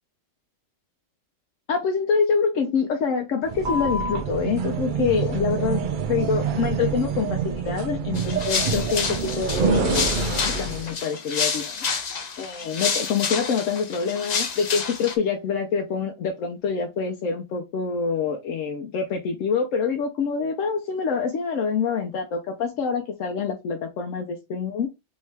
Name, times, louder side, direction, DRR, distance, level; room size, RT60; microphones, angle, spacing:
voice 1, 1.7-11.8 12.4-24.9, left 5 dB, 85° left, 1.0 m, -26 dB
sound 1, 3.4-10.9, right 5 dB, 60° right, 0.5 m, -26 dB
sound 2, 8.2-15.2, left 5 dB, 45° left, 0.6 m, -29 dB
3.6 x 3.2 x 3.2 m
omnidirectional pair, 1.3 m